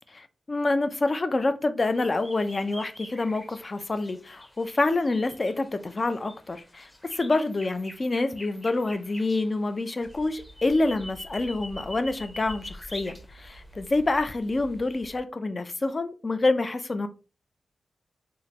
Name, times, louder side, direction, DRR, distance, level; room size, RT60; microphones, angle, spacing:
voice 1, 0.5-17.1, left 2 dB, 40° left, 0.4 m, -27 dB
sound 1, 1.9-15.2, left 1 dB, 15° left, 0.8 m, -45 dB
3.5 x 2.1 x 2.9 m
cardioid pair, 65°, 0 cm